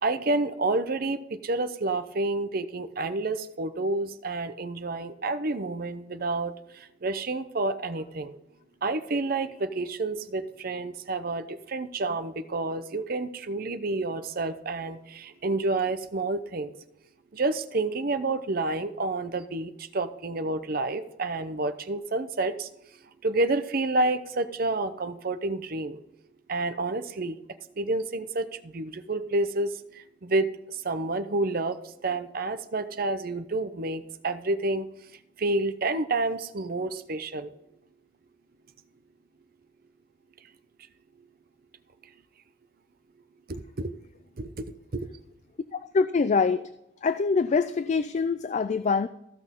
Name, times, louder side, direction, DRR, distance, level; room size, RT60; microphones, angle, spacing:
voice 1, 0.0-8.4 8.8-16.7 17.3-22.7 23.2-26.0 26.5-27.4 27.8-34.9 35.4-37.5 42.0-42.1 43.5-43.9 44.4-45.1, right 2 dB, 50° right, 10 dB, 0.7 m, -29 dB
voice 2, 45.9-46.6 47.0-49.1, left 4 dB, 40° left, 13 dB, 0.3 m, -24 dB
15.0 x 6.1 x 3.7 m, 0.87 s
head